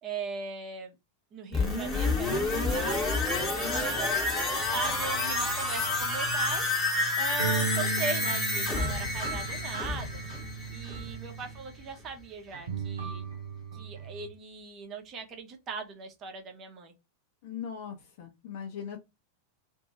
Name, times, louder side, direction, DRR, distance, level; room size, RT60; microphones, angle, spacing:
voice 1, 0.0-0.9 1.3-3.0 3.5-6.7 7.2-10.3 10.7-13.2 13.7-16.9, right 5 dB, 30° right, 0.8 m, -39 dB
sound 1, 1.5-11.2 11.6-11.7, left 2 dB, 20° left, 1.1 m, -29 dB
sound 2, 4.6-6.8 7.4-11.7 12.5-14.3, right 5 dB, 70° right, 0.8 m, -37 dB
voice 2, 17.4-19.0, left 8 dB, 50° left, 1.0 m, -39 dB
2.6 x 2.6 x 3.0 m
figure-of-eight pair, 90°, 0 cm